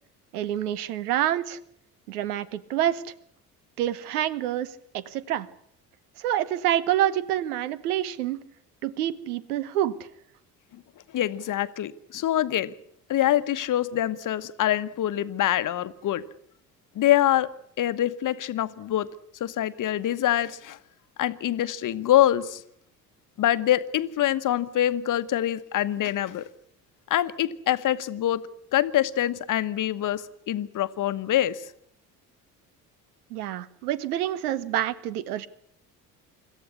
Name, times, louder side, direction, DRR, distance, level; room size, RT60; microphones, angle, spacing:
voice 1, 0.3-1.6 2.1-3.1 3.8-5.5 6.2-8.4 8.8-10.0 33.3-35.5, right 12 dB, 70° right, 18 dB, 1.2 m, -27 dB
voice 2, 11.1-12.7 13.1-16.2 16.9-17.5 17.8-19.1 19.4-20.8 21.2-22.6 23.4-26.4 27.1-28.4 28.7-31.7, left 12 dB, 40° left, 14 dB, 1.2 m, -25 dB
26.0 x 14.0 x 9.8 m, 0.72 s
figure-of-eight pair, 55°, 47 cm